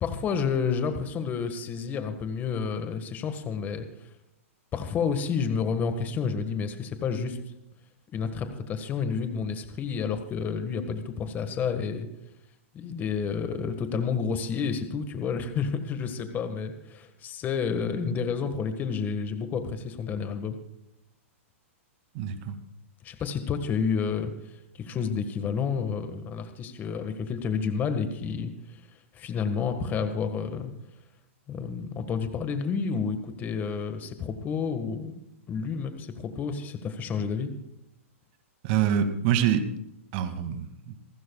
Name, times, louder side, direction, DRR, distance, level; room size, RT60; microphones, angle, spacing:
voice 1, 0.0-4.1 4.7-7.4 8.1-12.1 12.7-20.6 23.0-30.7 31.5-35.2 35.5-37.5, left 6 dB, 25° left, 8 dB, 1.6 m, -30 dB
voice 2, 22.1-22.6 38.6-39.7 40.1-40.9, right 9 dB, 45° right, 8 dB, 2.2 m, -26 dB
27.5 x 12.5 x 2.4 m, 0.82 s
hypercardioid pair, 140°, 7 cm